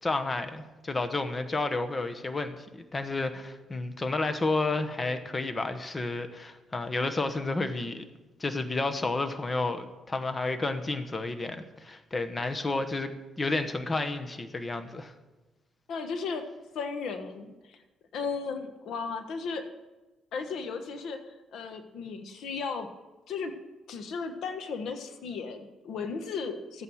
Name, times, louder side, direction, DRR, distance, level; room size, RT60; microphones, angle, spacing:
voice 1, 0.0-8.0 8.4-13.1 13.4-15.1, left 3 dB, 25° left, 9 dB, 1.2 m, -31 dB
voice 2, 15.9-16.4 16.7-17.8 18.1-19.6 20.3-22.9 23.3-23.5 23.9-26.8, left 5 dB, 75° left, 8 dB, 1.3 m, -35 dB
14.5 x 9.0 x 6.4 m, 1.1 s
cardioid pair, 90°, 0 cm